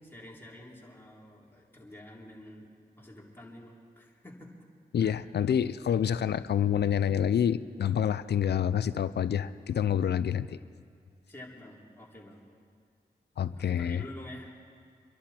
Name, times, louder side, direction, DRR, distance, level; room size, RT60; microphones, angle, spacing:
voice 1, 0.0-2.7 3.0-4.5 5.0-5.2 11.3-12.4 13.6-14.5, left 1 dB, 15° left, -4 dB, 3.8 m, -48 dB
voice 2, 4.9-10.6 13.4-14.0, left 9 dB, 80° left, 15 dB, 0.5 m, -27 dB
26.0 x 11.5 x 4.4 m, 2.4 s
cardioid pair, 65°, 17 cm